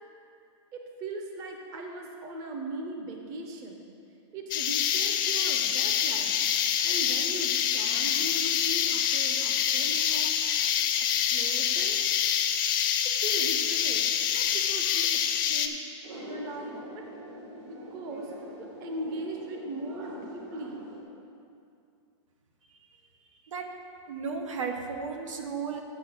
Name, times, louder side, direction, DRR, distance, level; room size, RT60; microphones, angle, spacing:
voice 1, 0.7-3.9 4.3-6.4 6.8-10.5 11.1-12.0 13.2-15.8 16.2-17.0 17.6-18.3 18.8-20.9, right 1 dB, 20° right, 2 dB, 0.7 m, -39 dB
sound 1, 4.5-15.7, left 9 dB, 45° left, 0.6 m, -26 dB
sound 2, 16.0-21.0, right 1 dB, 65° right, 2.1 m, -43 dB
voice 2, 24.1-25.8, right 5 dB, 90° right, 4 dB, 1.2 m, -34 dB
7.9 x 6.4 x 6.2 m, 2.6 s
supercardioid pair, 170°, 16 cm